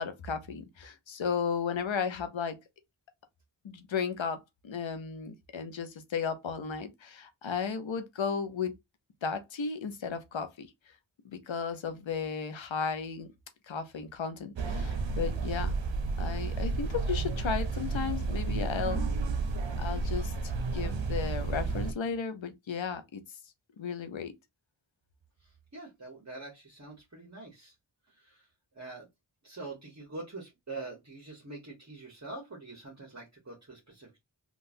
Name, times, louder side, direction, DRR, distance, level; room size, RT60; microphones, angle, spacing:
voice 1, 0.0-2.6 3.6-4.4 4.6-8.7 9.2-10.7 11.2-13.3 13.7-15.8 16.2-19.0 19.8-23.2 23.8-24.3, left 6 dB, 85° left, 0.7 m, -34 dB
sound 1, 14.6-21.9, right 4 dB, 75° right, 0.7 m, -31 dB
voice 2, 25.4-27.7 28.1-28.5 28.7-29.1 29.4-34.2, right 3 dB, 35° right, 1.1 m, -45 dB
3.7 x 2.4 x 2.5 m
wide cardioid pair, 75°, 45 cm